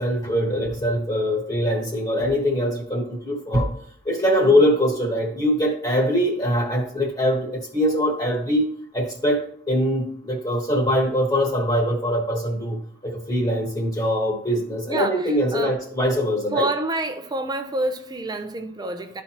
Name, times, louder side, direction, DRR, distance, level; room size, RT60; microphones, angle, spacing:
voice 1, 0.0-3.7 4.0-8.7 8.9-16.6, equal, 20° left, 1.4 m, -22 dB
voice 2, 14.9-15.8 16.5-19.2, right 2 dB, 20° right, 0.6 m, -28 dB
12.5 x 4.2 x 3.0 m
head